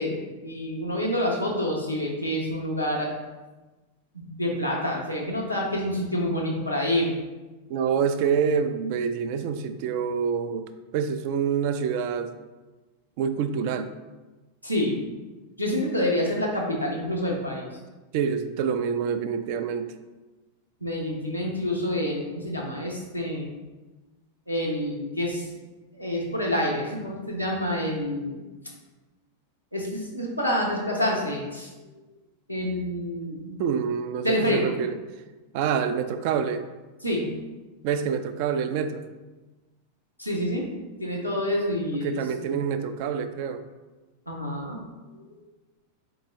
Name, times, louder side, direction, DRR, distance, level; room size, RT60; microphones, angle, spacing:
voice 1, 0.0-3.1 4.1-7.2 14.6-15.0 15.6-17.7 20.8-23.5 24.5-25.5 25.9-28.4 29.7-31.7 32.5-33.6 34.2-34.8 37.0-37.2 40.2-40.7 41.0-42.6 44.3-44.8 45.1-45.4, left 1 dB, 90° left, -3 dB, 0.9 m, -28 dB
voice 2, 7.7-12.3 13.2-13.9 18.1-19.9 33.6-35.0 35.5-36.7 37.8-39.0 42.0-43.6, right 7 dB, 45° right, 9 dB, 0.3 m, -26 dB
4.0 x 3.0 x 3.7 m, 1.2 s
figure-of-eight pair, 90°, 0 cm